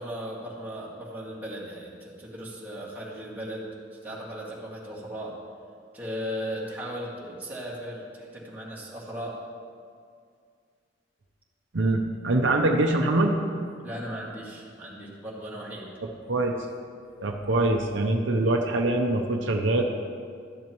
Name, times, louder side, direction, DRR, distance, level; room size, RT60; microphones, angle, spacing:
voice 1, 0.0-5.4 5.9-9.4 13.8-15.9, equal, 10° right, -6 dB, 2.1 m, -37 dB
voice 2, 11.7-13.4 16.0-16.6 17.2-19.8, right 2 dB, 70° right, 2 dB, 0.7 m, -24 dB
13.5 x 10.5 x 3.1 m, 2.2 s
head